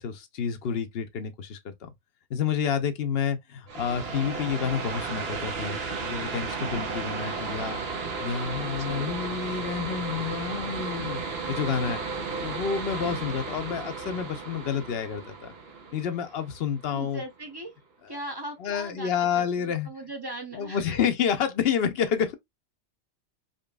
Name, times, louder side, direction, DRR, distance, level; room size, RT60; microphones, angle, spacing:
voice 1, 0.0-1.9 2.3-7.8 8.2-11.2 11.5-12.0 12.4-15.5 15.9-17.2 18.6-19.9 20.5-22.3, left 7 dB, 60° left, 0.9 m, -29 dB
sound 1, 3.7-17.1, right 4 dB, 60° right, 1.0 m, -34 dB
voice 2, 8.8-9.1 11.9-12.3 13.0-13.2 16.9-17.7 18.1-20.9, right 2 dB, 25° right, 0.7 m, -39 dB
5.2 x 2.9 x 2.3 m
omnidirectional pair, 1.2 m